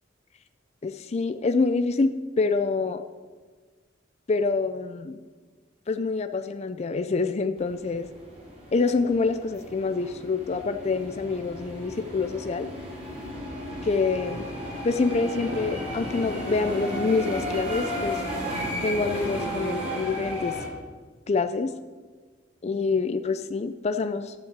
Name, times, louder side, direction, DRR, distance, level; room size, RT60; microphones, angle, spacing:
voice 1, 0.8-3.0 4.3-5.2 5.9-8.1 8.7-12.7 13.8-14.5 14.8-18.2 18.8-20.6 21.3-21.7 22.6-24.3, left 4 dB, 35° left, 8 dB, 0.4 m, -26 dB
sound 1, 7.6-20.7, equal, 35° right, 3.4 m, -34 dB
12.0 x 5.8 x 7.4 m, 1.4 s
head